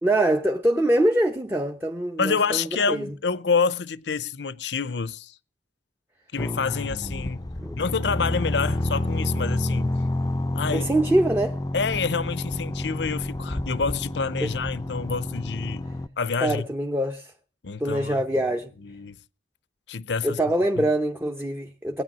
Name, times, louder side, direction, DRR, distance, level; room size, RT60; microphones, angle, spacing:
voice 1, 0.0-3.1 7.6-7.8 10.7-11.6 14.4-14.5 16.4-17.3 17.8-18.7 20.2-22.0, right 1 dB, 15° right, 0.9 m, -24 dB
voice 2, 2.2-5.3 6.3-7.4 7.8-9.9 10.5-10.9 11.7-15.9 16.2-16.6 17.6-18.2 18.8-19.2 19.9-20.4 20.8-20.9, left 5 dB, 75° left, 0.7 m, -27 dB
sound 1, 6.4-16.1, left 1 dB, 20° left, 0.6 m, -29 dB
19.0 x 9.8 x 6.2 m
head